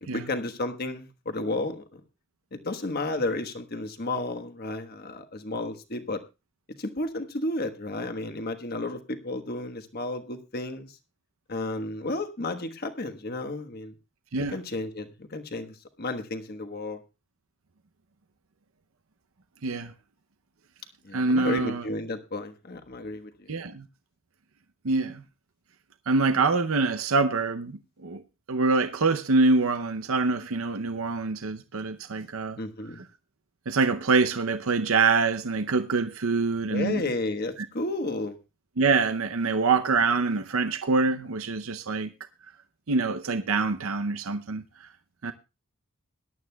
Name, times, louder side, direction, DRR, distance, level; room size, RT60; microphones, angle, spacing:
voice 1, 0.0-2.0 2.5-6.2 6.8-10.9 11.5-13.9 14.5-17.0 21.0-23.5 32.6-33.0 36.7-38.4 45.2-45.3, left 2 dB, 50° left, 1.3 m, -32 dB
voice 2, 19.6-19.9 21.1-21.8 23.5-23.9 24.8-25.2 26.1-28.2 28.5-32.6 33.7-37.0 38.8-42.1 42.9-44.9 45.2-45.3, right 4 dB, 80° right, 0.7 m, -25 dB
21.5 x 11.5 x 2.3 m
head